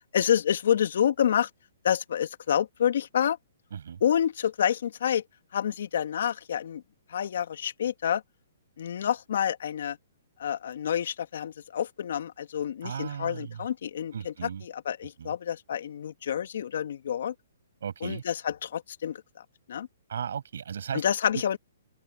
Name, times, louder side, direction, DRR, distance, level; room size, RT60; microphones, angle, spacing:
voice 1, 0.1-1.5 1.8-3.4 4.0-5.2 5.5-6.8 7.1-8.2 8.8-10.0 10.4-17.3 18.0-19.2 19.7-19.9 20.9-21.6, left 9 dB, 65° left, 2.3 m, -28 dB
voice 2, 3.7-4.0 12.8-13.7 14.1-14.6 15.2-15.3 17.8-18.2 20.1-21.0 21.3-21.4, right 8 dB, 70° right, 7.1 m, -36 dB
open air
hypercardioid pair, 145°, 0 cm